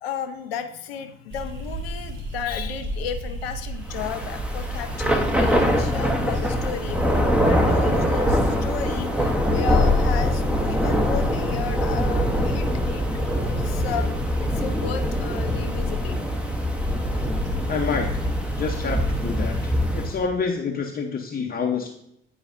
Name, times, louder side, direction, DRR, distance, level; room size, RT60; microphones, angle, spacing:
voice 1, 0.0-16.2, left 7 dB, 75° left, 8 dB, 0.6 m, -33 dB
sound 1, 1.3-19.7, right 2 dB, 40° right, 1.6 m, -36 dB
Thunder / Rain, 3.9-20.2, equal, 5° right, 0.8 m, -23 dB
voice 2, 17.7-18.1 18.6-21.9, left 5 dB, 30° left, 2 dB, 0.8 m, -28 dB
9.8 x 4.8 x 2.6 m, 0.73 s
figure-of-eight pair, 45°, 31 cm